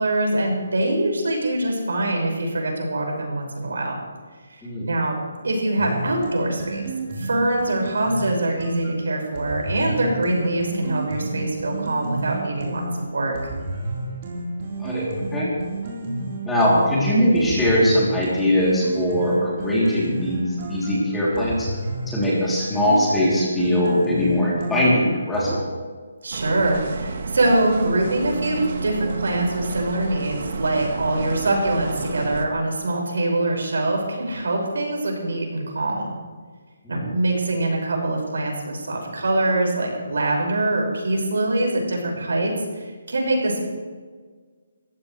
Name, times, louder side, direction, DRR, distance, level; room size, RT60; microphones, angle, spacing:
voice 1, 0.0-4.0 4.5-4.6 4.9-5.2 5.4-6.8 7.2-12.8 13.1-13.3 26.2-36.1 36.9-43.7, right 2 dB, 85° right, 0 dB, 5.8 m, -24 dB
sound 1, 5.8-25.6, right 2 dB, 35° right, 4.2 m, -31 dB
voice 2, 14.8-15.5 16.4-21.7 22.1-25.7 36.8-37.1, left 1 dB, 5° left, -7 dB, 3.1 m, -21 dB
sound 2, 26.3-32.5, right 4 dB, 50° right, 1.5 m, -30 dB
20.0 x 15.0 x 3.3 m, 1.5 s
hypercardioid pair, 170°, 0 cm